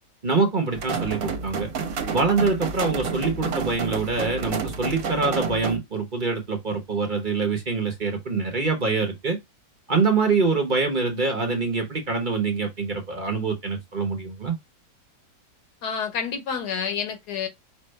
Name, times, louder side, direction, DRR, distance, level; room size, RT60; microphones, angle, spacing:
voice 1, 0.2-1.7 2.1-9.4 9.9-14.6, right 4 dB, 35° right, 1.0 m, -25 dB
sound 1, 0.7-5.8, right 5 dB, 60° right, 1.2 m, -29 dB
voice 2, 15.8-17.5, left 7 dB, 75° left, 1.4 m, -29 dB
5.4 x 2.5 x 3.2 m
omnidirectional pair, 1.8 m